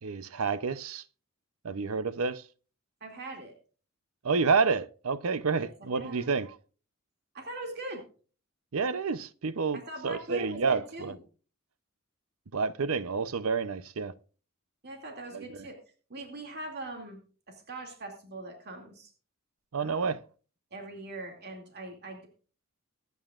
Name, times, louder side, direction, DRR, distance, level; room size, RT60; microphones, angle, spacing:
voice 1, 0.0-1.0 1.6-2.5 4.2-6.6 8.7-11.1 12.5-14.1 15.3-15.7 19.7-20.2, right 5 dB, 70° right, 0.7 m, -29 dB
voice 2, 3.0-3.5 5.6-6.3 7.3-8.0 9.7-11.2 14.8-15.8 16.1-17.2 17.5-19.1 19.8-20.1 20.7-22.3, right 2 dB, 50° right, 2.4 m, -41 dB
23.0 x 9.5 x 2.4 m
head